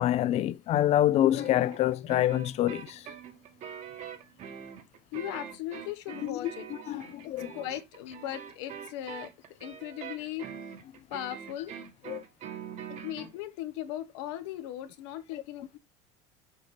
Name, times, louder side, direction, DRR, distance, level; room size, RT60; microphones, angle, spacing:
voice 1, 0.0-3.1 6.2-6.5 6.9-7.5 12.1-12.2, left 13 dB, 45° left, 0.5 m, -26 dB
sound 1, 1.3-13.3, right 8 dB, 50° right, 1.8 m, -44 dB
voice 2, 5.1-6.7 7.2-9.3 9.6-10.4 11.1-11.7 12.9-15.8, left 12 dB, 80° left, 1.1 m, -38 dB
6.6 x 5.7 x 3.2 m
supercardioid pair, 115°, 15 cm